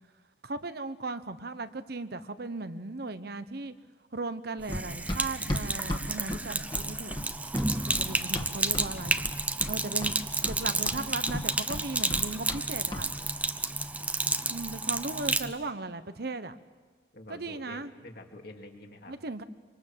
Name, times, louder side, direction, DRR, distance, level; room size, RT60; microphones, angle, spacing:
voice 1, 0.4-3.7 4.1-7.2 7.9-9.2 9.7-10.1 10.4-13.1 14.5-16.5 17.3-17.9 19.1-19.4, right 3 dB, 55° right, 11 dB, 1.1 m, -37 dB
Sink (filling or washing), 4.6-15.5, right 2 dB, 10° right, 0.7 m, -31 dB
Run, 4.7-8.9 9.2-9.8 10.0-12.6 12.9-13.1, left 1 dB, 25° left, 2.1 m, -35 dB
voice 2, 17.1-19.1, left 1 dB, 55° left, 2 dB, 2.9 m, -47 dB
25.5 x 25.5 x 7.5 m, 1.4 s
head